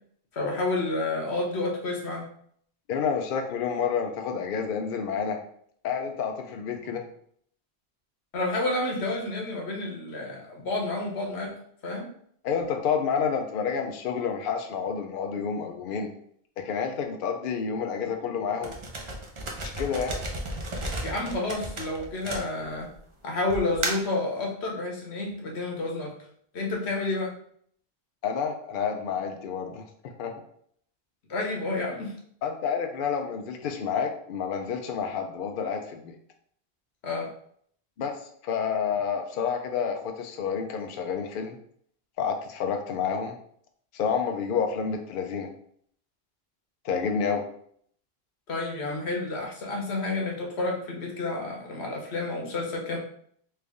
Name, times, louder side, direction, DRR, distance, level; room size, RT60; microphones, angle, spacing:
voice 1, 0.3-2.3 8.3-11.5 11.8-12.1 21.0-22.9 23.2-26.1 26.5-27.3 31.3-32.2 37.0-37.3 48.5-53.0, left 2 dB, 90° left, 0 dB, 1.2 m, -30 dB
voice 2, 2.9-5.4 5.8-7.0 12.4-16.1 16.6-18.8 19.6-20.2 28.2-29.8 30.2-30.3 32.4-36.1 38.0-41.6 42.2-43.3 43.9-45.5 46.8-47.4, left 6 dB, 65° left, 4 dB, 0.7 m, -29 dB
sound 1, 18.6-22.9 23.5-24.2, right 1 dB, 35° right, 0.5 m, -33 dB
3.4 x 2.6 x 3.4 m, 0.63 s
omnidirectional pair, 1.1 m